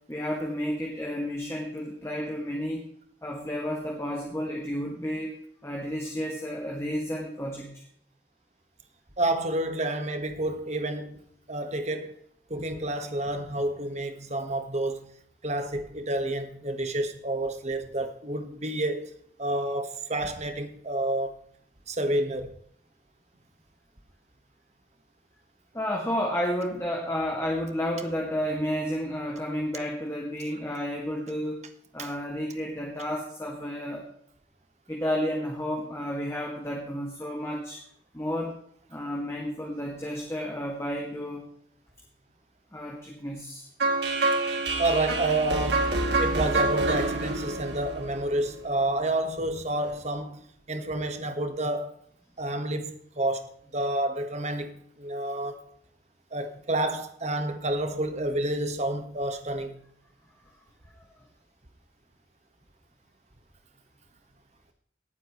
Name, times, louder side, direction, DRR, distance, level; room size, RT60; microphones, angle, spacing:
voice 1, 0.1-2.9 3.2-5.3 5.6-7.8 25.7-31.6 31.9-34.0 34.9-37.8 38.1-38.6 38.9-41.5 42.7-43.7, equal, 15° left, 2.1 m, -31 dB
voice 2, 9.2-11.2 11.5-12.2 12.5-15.1 15.4-19.1 19.4-21.3 21.9-22.5 32.0-32.1 44.8-51.9 52.4-55.6 56.3-59.8, right 1 dB, 35° right, 1.5 m, -29 dB
sound 1, 43.8-48.8, right 2 dB, 65° right, 2.5 m, -27 dB
19.0 x 9.2 x 3.2 m
head